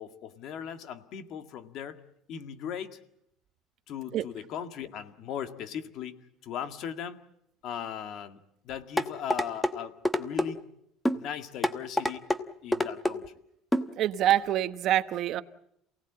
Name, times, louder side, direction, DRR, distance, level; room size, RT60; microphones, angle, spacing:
voice 1, 0.0-2.0 2.3-3.0 3.9-7.2 7.6-8.4 8.6-10.6 11.1-12.2 12.6-13.2, left 8 dB, 50° left, 9 dB, 1.9 m, -38 dB
sound 1, 9.0-9.7 10.0-10.5 11.0-11.2 11.6-12.4 12.7-13.2 13.7-13.9 14.3-14.4, left 1 dB, 5° left, 1.1 m, -26 dB
voice 2, 14.0-15.4, right 12 dB, 45° right, 11 dB, 1.0 m, -25 dB
28.0 x 18.0 x 8.7 m, 0.77 s
cardioid pair, 160°, 0 cm